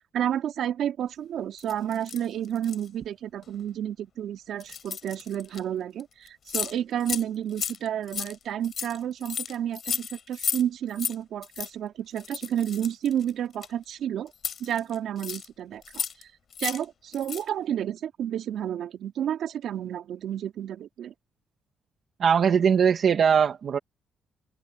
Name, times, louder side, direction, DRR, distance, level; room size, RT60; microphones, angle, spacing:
voice 1, 0.1-14.3 14.6-16.3 16.6-21.1, right 10 dB, 65° right, 3.6 m, -31 dB
sound 1, 1.6-2.9 3.4-3.6 4.6-5.6 6.0-6.1 6.3-6.7 7.0-7.2 7.5-10.6 10.9-11.1 11.4-11.7 12.2-13.9 14.3-15.5 15.8-16.2 16.5-16.8 17.1-17.5, left 7 dB, 45° left, 6.4 m, -33 dB
voice 2, 22.2-23.8, right 7 dB, 45° right, 1.8 m, -20 dB
cardioid pair, 150°, 0 cm